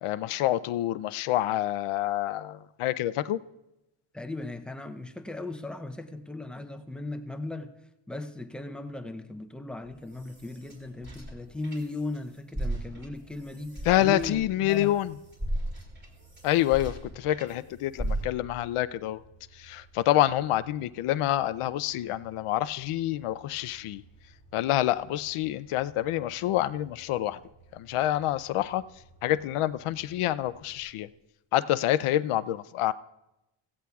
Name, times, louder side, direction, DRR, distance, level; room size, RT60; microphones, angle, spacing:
voice 1, 0.0-3.4 13.9-15.1 16.4-19.2 19.6-24.0 24.5-27.4 27.7-28.8 29.2-31.1 31.5-32.9, left 13 dB, 90° left, 14 dB, 0.6 m, -27 dB
voice 2, 4.1-7.7 8.1-14.9, left 2 dB, ahead, 7 dB, 0.5 m, -37 dB
sound 1, 9.8-12.2 12.5-17.5 18.0-18.7, right 1 dB, 20° right, 2.3 m, -36 dB
sound 2, 13.8-30.8, right 3 dB, 60° right, 4.9 m, -57 dB
16.0 x 15.0 x 2.3 m, 0.92 s
cardioid pair, 120°, 49 cm